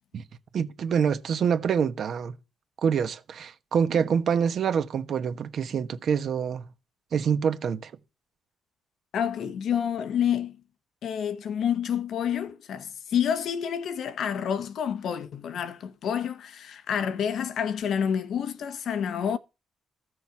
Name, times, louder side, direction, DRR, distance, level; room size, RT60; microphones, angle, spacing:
voice 1, 0.5-2.4 2.8-6.6 7.1-7.9, right 7 dB, 60° right, 1.3 m, -26 dB
voice 2, 9.1-10.6 11.0-19.4, left 8 dB, 70° left, 1.2 m, -28 dB
14.0 x 6.4 x 6.1 m
cardioid pair, 90°, 0 cm